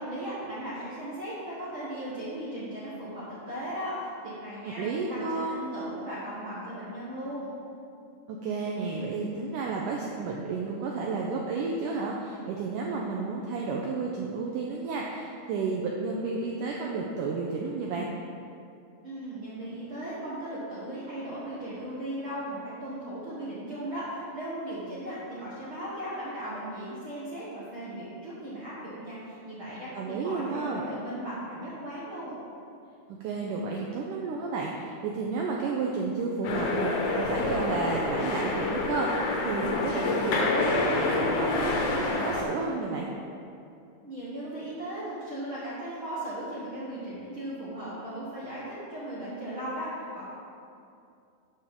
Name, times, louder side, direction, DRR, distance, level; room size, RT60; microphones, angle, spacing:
voice 1, 0.0-7.5 19.0-32.4 44.0-50.3, right 1 dB, 55° right, -9 dB, 1.5 m, -37 dB
voice 2, 4.7-5.6 8.3-18.1 29.9-30.8 33.1-43.1, right 4 dB, 85° right, -1 dB, 1.8 m, -32 dB
sound 1, 36.4-42.4, left 2 dB, 65° left, 2.1 m, -27 dB
12.5 x 6.9 x 3.7 m, 2.5 s
omnidirectional pair, 4.5 m